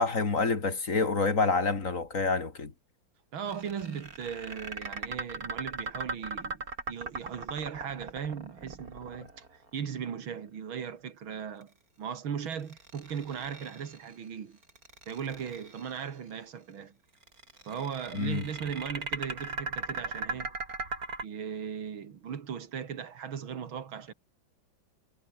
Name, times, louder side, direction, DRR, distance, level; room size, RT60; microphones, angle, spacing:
voice 1, 0.0-2.7 18.1-18.5, left 4 dB, 40° left, 2.7 m, -27 dB
voice 2, 3.3-9.4 9.7-11.7 12.0-14.6 15.1-17.0 17.7-20.5 21.2-24.1, right 7 dB, 90° right, 2.7 m, -38 dB
sound 1, 3.5-9.7 12.5-14.1 14.6-16.0 17.2-21.2, right 3 dB, 45° right, 4.6 m, -38 dB
omnidirectional pair, 2.1 m